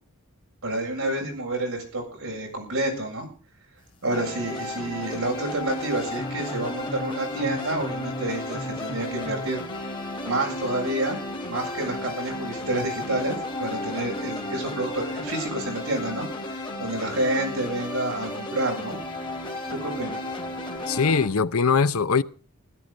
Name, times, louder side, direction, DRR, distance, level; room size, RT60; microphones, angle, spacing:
voice 1, 0.6-3.3 4.0-9.9 10.2-11.2 11.5-19.0 19.8-20.2, right 1 dB, 70° right, 7.4 m, -29 dB
sound 1, 4.1-21.3, left 1 dB, 20° left, 3.0 m, -33 dB
voice 2, 20.9-22.2, left 5 dB, 75° left, 0.7 m, -21 dB
16.5 x 13.0 x 5.3 m
head